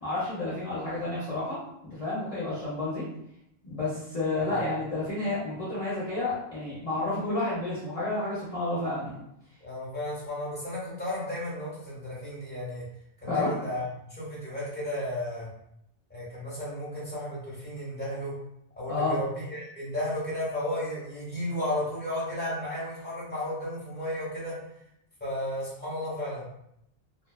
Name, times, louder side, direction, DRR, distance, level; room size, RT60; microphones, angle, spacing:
voice 1, 0.0-3.1 3.6-9.2 13.3-13.5 18.9-19.2, left 2 dB, 40° left, -9 dB, 0.7 m, -30 dB
voice 2, 9.6-12.8 13.2-15.5 16.1-18.3 18.8-24.5 25.2-26.5, left 1 dB, 10° left, -7 dB, 1.0 m, -33 dB
2.6 x 2.2 x 2.2 m, 0.78 s
omnidirectional pair, 1.0 m